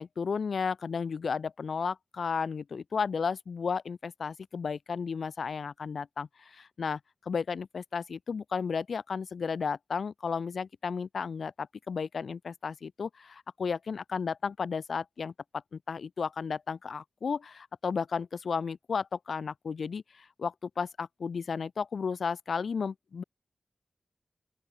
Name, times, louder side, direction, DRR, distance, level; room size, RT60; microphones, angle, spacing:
voice 1, 0.0-15.3 15.7-23.2, left 5 dB, 85° left, 1.7 m, -33 dB
open air
wide cardioid pair, 110°, 0 cm